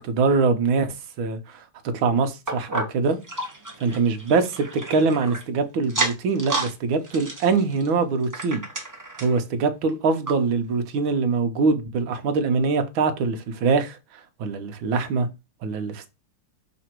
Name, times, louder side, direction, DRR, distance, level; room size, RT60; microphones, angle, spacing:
voice 1, 0.0-3.2 3.8-8.6 9.2-14.0 14.4-15.3 15.6-16.1, right 4 dB, 70° right, 1.6 m, -23 dB
sound 1, 2.5-5.4 5.8-6.7 7.0-9.4 9.9-10.0 10.3-10.4 11.0-11.1, right 2 dB, 15° right, 0.7 m, -31 dB
6.2 x 3.8 x 4.4 m
omnidirectional pair, 2.4 m